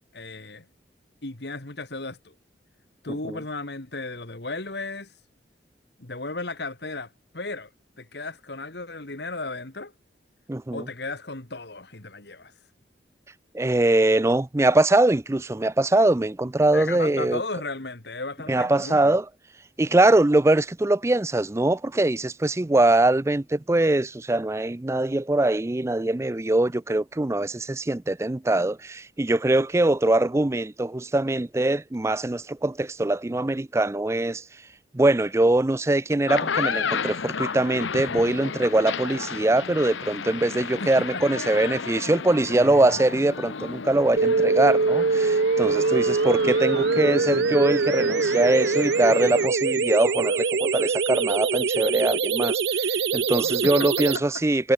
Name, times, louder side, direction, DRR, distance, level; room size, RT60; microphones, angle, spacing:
voice 1, 0.1-0.7 1.2-2.3 3.0-5.1 6.0-7.7 8.0-9.9 10.7-12.5 16.7-19.1 40.8-41.2 42.5-43.0 53.4-53.9 54.1-54.2, left 3 dB, 60° left, 2.2 m, -35 dB
voice 2, 10.5-10.9 13.5-17.4 18.5-19.3 19.8-34.4 34.9-54.7, right 2 dB, 15° right, 0.4 m, -22 dB
sound 1, 36.1-49.5, left 5 dB, 85° left, 0.9 m, -33 dB
sound 2, 44.2-54.2, right 4 dB, 70° right, 0.6 m, -23 dB
head